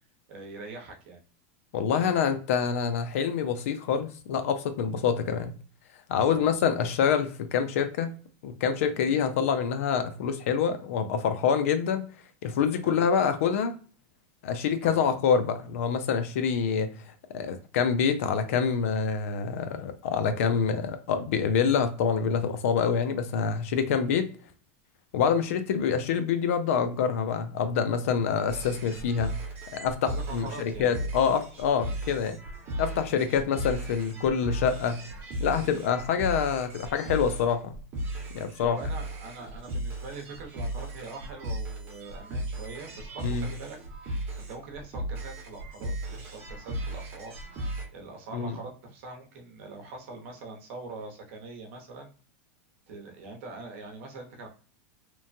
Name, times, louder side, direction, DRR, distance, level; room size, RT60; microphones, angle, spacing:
voice 1, 0.3-1.2 6.3-6.5 8.9-9.1 12.8-13.0 14.8-15.0 30.0-30.9 38.6-43.8 44.4-47.4 47.9-52.1 52.9-54.5, right 3 dB, 60° right, 2 dB, 0.9 m, -43 dB
voice 2, 1.7-5.5 6.1-8.1 8.4-12.1 12.4-13.7 14.4-16.9 17.3-24.3 25.1-29.3 29.7-32.4 32.8-35.0 35.4-37.8 38.3-38.8 43.2-43.5 48.3-48.5, left 7 dB, 70° left, 10 dB, 0.5 m, -26 dB
sound 1, 28.5-47.9, right 1 dB, 30° right, 1.0 m, -36 dB
3.0 x 2.1 x 2.5 m, 0.40 s
supercardioid pair, 155°, 8 cm